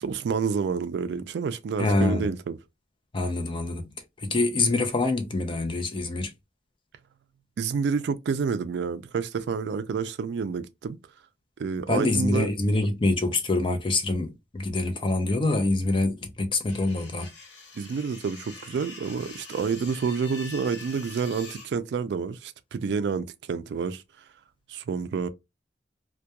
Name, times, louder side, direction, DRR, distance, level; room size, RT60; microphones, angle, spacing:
voice 1, 0.0-2.6 7.6-11.0 11.6-12.5 17.8-24.0 24.7-25.3, right 5 dB, 65° right, 0.3 m, -29 dB
voice 2, 1.8-2.3 3.1-6.3 11.9-17.3, left 2 dB, 30° left, 0.5 m, -25 dB
sound 1, 16.7-21.7, left 3 dB, 75° left, 0.8 m, -44 dB
2.3 x 2.1 x 2.8 m
head